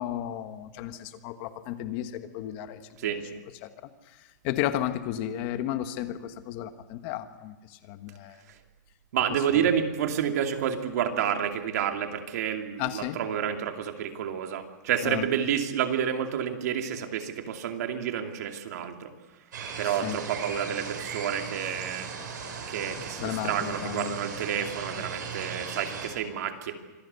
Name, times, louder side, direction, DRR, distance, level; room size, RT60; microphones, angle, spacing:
voice 1, 0.0-2.8 3.6-3.7 4.4-7.6 7.9-8.4 9.5-9.6 12.8-13.2 15.0-15.2 20.0-20.2 23.2-24.1, left 12 dB, 35° left, 10 dB, 1.3 m, -33 dB
voice 2, 9.1-19.1 19.8-22.1 22.7-26.7, right 9 dB, 60° right, 5 dB, 2.5 m, -29 dB
sound 1, 19.5-26.1, right 5 dB, 85° right, 6.6 m, -38 dB
25.5 x 17.0 x 8.2 m, 1.2 s
supercardioid pair, 170°, 10 cm